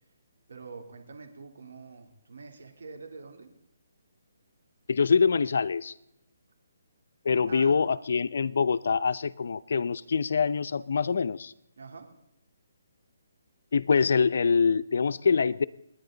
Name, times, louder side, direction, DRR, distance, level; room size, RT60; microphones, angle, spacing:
voice 1, 0.5-3.5 7.5-7.7 11.8-12.1, right 4 dB, 75° right, 5 dB, 3.2 m, -45 dB
voice 2, 4.9-5.9 7.2-11.5 13.7-15.6, left 5 dB, 60° left, 13 dB, 0.6 m, -25 dB
29.0 x 10.0 x 4.0 m, 0.84 s
hypercardioid pair, 165°, 0 cm